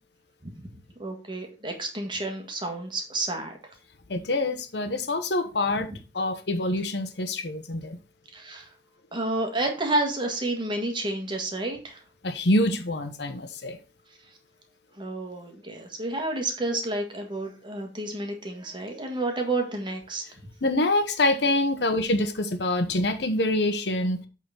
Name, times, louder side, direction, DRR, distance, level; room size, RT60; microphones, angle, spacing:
voice 1, 1.0-3.5 8.3-8.7 9.1-12.0 15.0-20.2, right 2 dB, 25° right, 1.7 m, -30 dB
voice 2, 4.1-5.9 6.1-8.0 12.2-13.8 20.6-24.3, left 1 dB, 70° left, 1.0 m, -25 dB
8.3 x 3.9 x 5.7 m
head